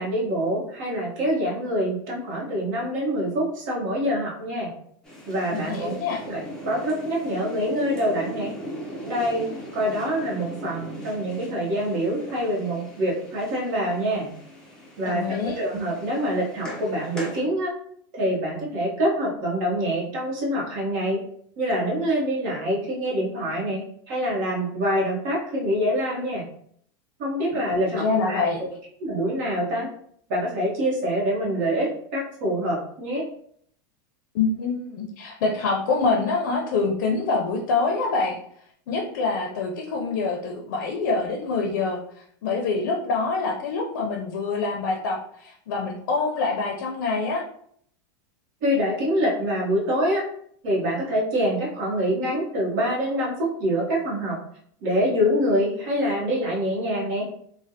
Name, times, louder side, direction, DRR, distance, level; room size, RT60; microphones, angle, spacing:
voice 1, 0.0-4.7 5.3-5.9 6.2-8.5 9.0-14.3 15.0-17.8 18.1-21.2 21.6-26.4 27.2-28.4 29.0-29.9 30.3-33.3 48.6-50.2 50.6-54.4 54.8-57.3, equal, 50° right, -4 dB, 1.2 m, -25 dB
sound 1, 5.0-17.4, equal, 5° left, 0.5 m, -39 dB
voice 2, 5.5-6.2 15.1-15.6 27.5-27.6 27.9-28.6 34.3-38.4 38.9-47.4, left 4 dB, 70° left, 1 dB, 0.5 m, -25 dB
3.2 x 2.2 x 2.7 m, 0.65 s
supercardioid pair, 170°, 11 cm